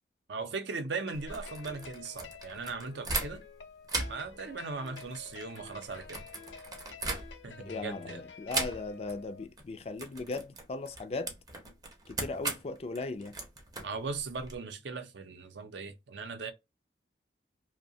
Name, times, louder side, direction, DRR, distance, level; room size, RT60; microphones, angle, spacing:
voice 1, 0.3-3.4 4.1-6.2 7.4-8.2 13.8-16.5, right 4 dB, 75° right, 0.5 m, -38 dB
sound 1, 1.0-9.5, left 6 dB, 90° left, 0.5 m, -50 dB
sound 2, 1.1-3.6 3.8-7.7 8.5-9.2 9.4-9.6 10.0-14.6, right 3 dB, 20° right, 0.5 m, -38 dB
voice 2, 7.7-11.3 12.1-13.3, left 3 dB, 35° left, 0.3 m, -38 dB
2.7 x 2.1 x 2.6 m
head